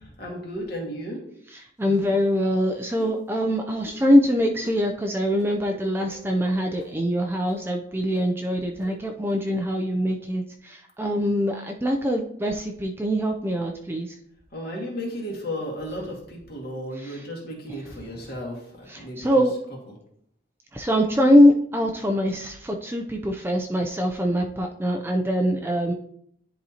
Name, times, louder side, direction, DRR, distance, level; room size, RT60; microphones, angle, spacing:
voice 1, 0.2-1.2 14.5-19.4, equal, 50° left, -1 dB, 1.9 m, -34 dB
voice 2, 1.5-14.1 17.0-17.2 18.9-19.5 20.7-25.9, equal, 10° right, 2 dB, 0.4 m, -23 dB
sound 1, 1.8-2.3 3.0-3.1 3.8-4.0 4.6-4.7 5.4-5.5 6.1-6.2 6.8-6.9 7.5-7.6 8.1-8.2 8.8-8.9, left 2 dB, 70° left, 2.2 m, -42 dB
10.5 x 4.2 x 2.8 m, 0.67 s
head